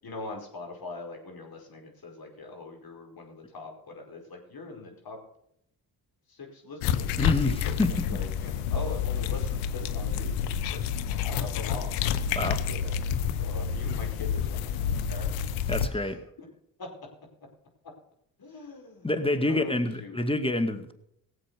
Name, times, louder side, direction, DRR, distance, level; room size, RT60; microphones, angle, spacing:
voice 1, 0.0-5.2 6.3-10.8 11.2-13.0 13.4-15.3 15.7-16.5 16.8-17.1 18.4-19.1 19.5-20.2, left 3 dB, 50° left, 2 dB, 5.3 m, -42 dB
sound 1, 6.8-15.9, left 8 dB, 85° left, 0.9 m, -29 dB
voice 2, 7.2-8.1 12.4-12.6 15.7-16.2 19.0-20.9, left 2 dB, 10° left, 9 dB, 2.1 m, -27 dB
17.5 x 7.7 x 6.7 m, 0.74 s
hypercardioid pair, 50°, 47 cm